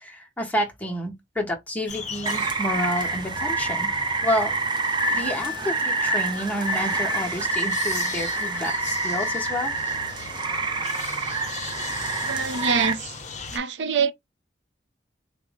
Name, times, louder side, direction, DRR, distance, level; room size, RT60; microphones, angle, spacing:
voice 1, 0.0-3.9 4.2-4.6 4.9-9.7 10.5-10.6, equal, 10° left, 0.9 m, -29 dB
sound 1, 1.9-13.6, left 5 dB, 40° left, 0.7 m, -39 dB
Rain, 2.3-12.9, right 4 dB, 25° right, 0.5 m, -27 dB
sound 2, 5.0-9.9, left 10 dB, 65° left, 0.4 m, -33 dB
voice 2, 12.3-13.1 13.5-14.1, right 6 dB, 85° right, 0.5 m, -25 dB
4.3 x 2.0 x 3.5 m
head